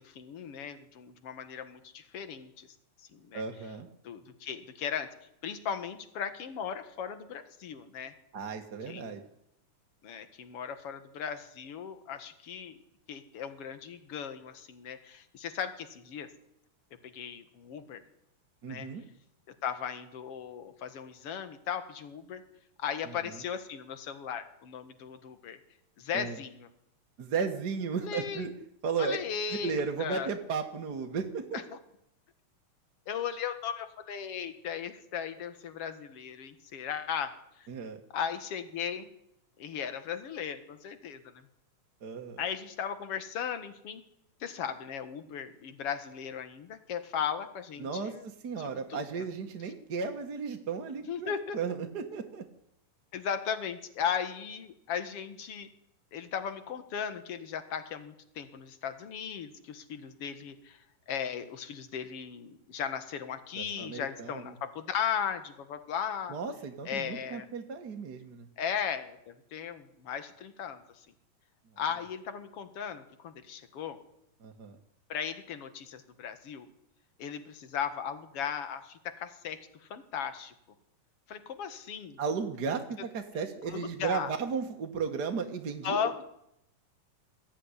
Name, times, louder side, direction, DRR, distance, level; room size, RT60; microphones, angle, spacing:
voice 1, 0.0-2.7 3.1-3.4 4.0-5.1 5.4-8.1 8.9-9.2 10.0-12.8 13.1-16.3 17.0-18.0 18.7-18.9 19.6-22.4 22.8-25.6 26.0-26.7 28.0-28.5 29.0-30.3 31.5-31.8 33.1-37.7 38.1-39.1 39.6-41.5 42.4-44.0 44.4-48.3 48.6-49.3 51.1-51.6 53.1-55.7 56.1-60.8 61.1-66.4 66.9-67.5 68.6-71.1 71.8-74.0 75.1-76.7 77.2-80.5 81.3-82.2 83.7-84.3 85.8-86.2, left 7 dB, 50° left, 10 dB, 2.3 m, -37 dB
voice 2, 3.3-3.9 8.3-9.2 18.6-19.0 23.0-23.4 26.1-26.4 27.2-28.5 28.8-29.2 29.6-31.6 37.7-38.0 42.0-42.4 47.8-48.2 48.4-52.4 63.5-64.5 66.3-68.5 74.4-74.8 82.2-86.2, right 5 dB, 45° right, 4 dB, 1.5 m, -35 dB
21.5 x 15.0 x 9.9 m, 0.78 s
omnidirectional pair, 3.8 m